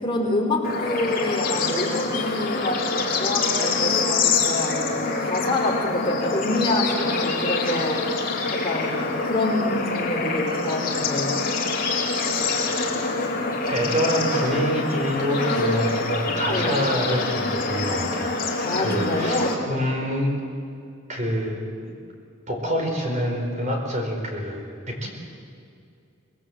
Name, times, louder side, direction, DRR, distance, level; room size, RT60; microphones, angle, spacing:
voice 1, 0.0-8.0 8.5-11.4 16.5-16.8 18.6-19.6, left 1 dB, 25° left, -1 dB, 4.0 m, -27 dB
Bird / Insect / Frog, 0.6-19.5, left 3 dB, 40° left, 2.7 m, -25 dB
voice 2, 13.7-20.3 21.1-21.9 22.5-25.1, equal, 35° right, 1 dB, 4.8 m, -26 dB
25.0 x 20.0 x 7.9 m, 2.4 s
head